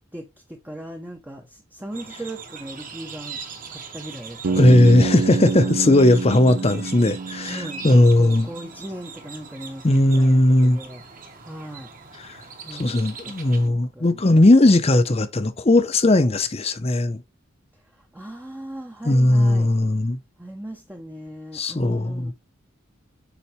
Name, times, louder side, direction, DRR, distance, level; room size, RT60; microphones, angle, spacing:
voice 1, 0.1-3.4 3.7-6.1 7.5-11.0 11.4-11.9 12.6-14.2 17.9-19.7 20.4-22.3, right 1 dB, 10° right, 0.7 m, -38 dB
sound 1, 1.9-13.7, right 5 dB, 40° right, 1.3 m, -41 dB
Bass guitar, 4.4-8.4, right 4 dB, 65° right, 0.5 m, -27 dB
voice 2, 4.6-7.6 7.8-8.5 9.8-10.8 12.7-17.2 19.0-20.2 21.5-22.3, left 1 dB, 30° left, 0.7 m, -17 dB
7.1 x 4.5 x 3.2 m
head